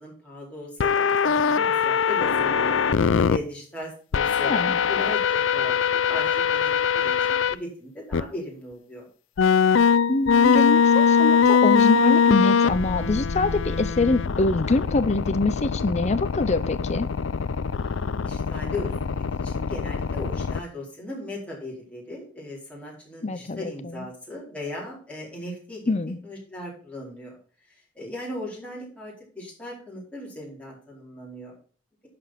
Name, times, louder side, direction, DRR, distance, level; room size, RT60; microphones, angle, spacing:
voice 1, 0.0-2.8 3.3-9.1 18.2-25.9 26.2-27.3 27.9-31.5, left 1 dB, 5° left, -5 dB, 4.6 m, -37 dB
sound 1, 0.8-3.4 4.1-7.5 8.1-8.2 9.4-20.6, left 6 dB, 75° left, 0.5 m, -22 dB
voice 2, 4.4-4.8 10.1-17.1 23.2-24.1 25.9-26.2, left 3 dB, 35° left, 11 dB, 0.6 m, -24 dB
11.5 x 5.2 x 5.8 m, 0.42 s
head